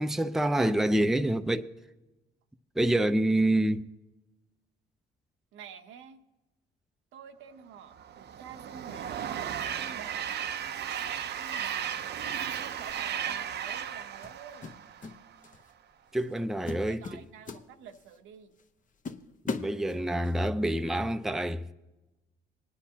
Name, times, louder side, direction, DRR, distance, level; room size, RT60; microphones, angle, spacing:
voice 1, 0.0-1.7 2.8-3.8 16.1-17.2 19.4-21.7, right 1 dB, ahead, 0.5 m, -27 dB
voice 2, 5.5-6.2 7.1-10.5 10.9-11.0 11.3-12.1 12.6-14.7 16.6-18.5, right 8 dB, 85° right, 0.9 m, -48 dB
Train, 7.9-15.4, right 9 dB, 55° right, 0.6 m, -35 dB
sound 1, 12.9-13.1 14.2-15.2 15.4-15.7 16.2-16.4 16.7-18.2 18.6-18.7 19.0-20.4, left 4 dB, 40° left, 0.9 m, -38 dB
20.0 x 9.7 x 2.8 m
cardioid pair, 90°, 20 cm